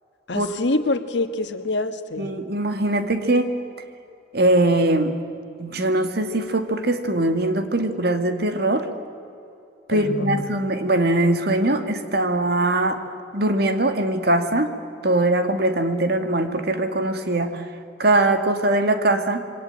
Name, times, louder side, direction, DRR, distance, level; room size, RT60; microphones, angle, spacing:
voice 1, 0.3-2.3 9.9-10.6, left 2 dB, 75° left, 8 dB, 1.6 m, -26 dB
voice 2, 2.2-3.5 4.3-5.1 5.6-8.9 9.9-13.0 13.3-14.7 15.0-17.6 18.0-19.4, right 2 dB, 60° right, 7 dB, 2.3 m, -21 dB
27.5 x 23.5 x 8.9 m, 2.7 s
head